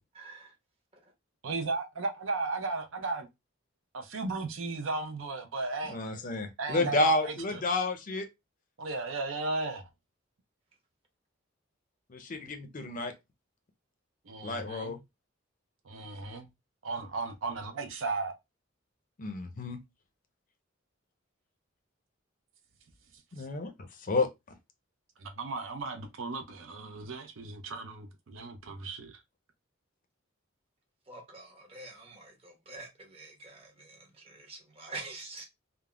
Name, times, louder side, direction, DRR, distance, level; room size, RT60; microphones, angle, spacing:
voice 1, 0.1-0.5 31.1-35.4, right 3 dB, 30° right, 0.9 m, -46 dB
voice 2, 1.4-3.3 3.9-7.6 8.8-9.9 14.3-15.0 15.8-16.5 16.8-18.3 23.4-23.5 25.2-29.1, right 3 dB, 75° right, 0.6 m, -35 dB
voice 3, 5.9-8.3 12.1-13.1 14.4-15.0 19.2-19.8 23.3-23.7 24.1-24.3, left 2 dB, 40° left, 0.5 m, -30 dB
3.4 x 2.0 x 2.2 m
head